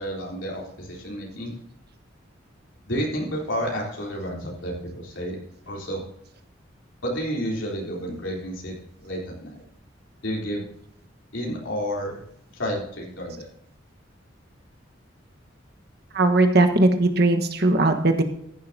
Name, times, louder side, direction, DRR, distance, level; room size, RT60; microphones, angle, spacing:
voice 1, 0.0-1.6 2.9-5.4 5.6-6.0 7.0-8.7 9.0-9.6 10.2-10.6 11.3-12.1 12.5-13.5, equal, 80° left, -2 dB, 3.6 m, -30 dB
voice 2, 16.1-18.2, right 2 dB, 55° right, 6 dB, 1.4 m, -19 dB
14.5 x 11.5 x 2.8 m, 0.71 s
head